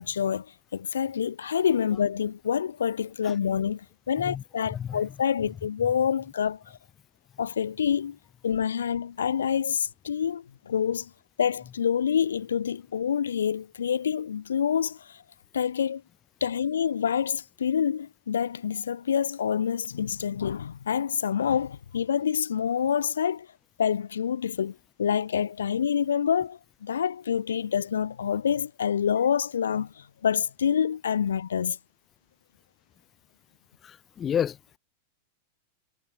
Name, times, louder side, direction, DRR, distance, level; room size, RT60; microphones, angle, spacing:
voice 1, 0.0-6.8 7.4-8.2 8.4-11.1 11.4-15.2 15.5-16.0 16.4-23.5 23.8-31.8, left 8 dB, 70° left, 0.9 m, -27 dB
voice 2, 33.8-34.6, left 9 dB, 25° left, 0.9 m, -29 dB
figure-of-eight pair, 90°, 0 cm